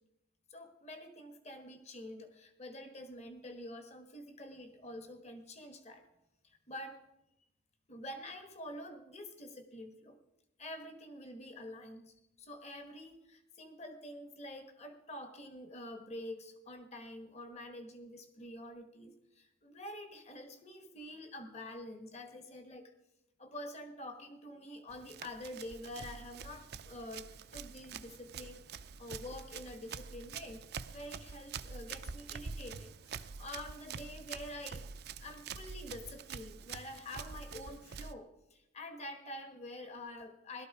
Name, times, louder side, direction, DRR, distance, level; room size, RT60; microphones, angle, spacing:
voice 1, 0.5-6.0 6.4-7.0 7.9-10.2 10.6-22.9 23.4-34.9 35.2-40.7, left 1 dB, 35° left, 7 dB, 1.4 m, -47 dB
Run, 24.9-38.1, right 6 dB, 50° right, 0.5 m, -46 dB
17.0 x 12.0 x 4.8 m, 0.86 s
head